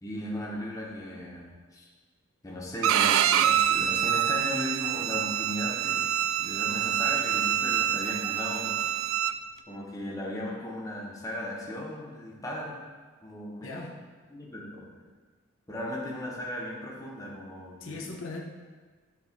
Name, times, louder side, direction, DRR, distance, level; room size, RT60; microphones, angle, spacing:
voice 1, 0.0-1.9 2.4-8.9 9.7-12.8 13.2-13.8 14.3-14.9 15.7-18.0, left 1 dB, 15° left, -3 dB, 0.9 m, -37 dB
Bowed string instrument, 2.8-9.3, right 10 dB, 90° right, 0.3 m, -26 dB
voice 2, 13.6-14.0 17.8-18.4, left 3 dB, 75° left, 0 dB, 0.7 m, -39 dB
8.4 x 3.0 x 4.4 m, 1.4 s
head